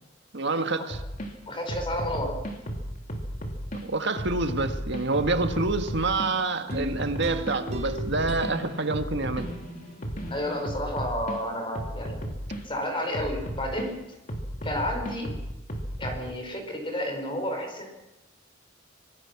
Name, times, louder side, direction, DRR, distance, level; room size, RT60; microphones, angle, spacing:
voice 1, 0.3-1.0 3.8-9.5, right 3 dB, 60° right, 1.7 m, -27 dB
sound 1, 0.9-1.3 1.7-3.8 4.2-6.3 6.7-11.4 11.7-12.6 13.1-13.9 14.3-16.2, equal, 40° left, 3.0 m, -34 dB
voice 2, 1.5-2.4 10.3-12.2 12.6-14.0 14.6-15.3 16.0-17.9, left 1 dB, 25° left, 5.0 m, -31 dB
sound 2, 6.7-10.0 10.4-10.5, equal, 35° right, 4.5 m, -38 dB
25.5 x 20.0 x 6.0 m
head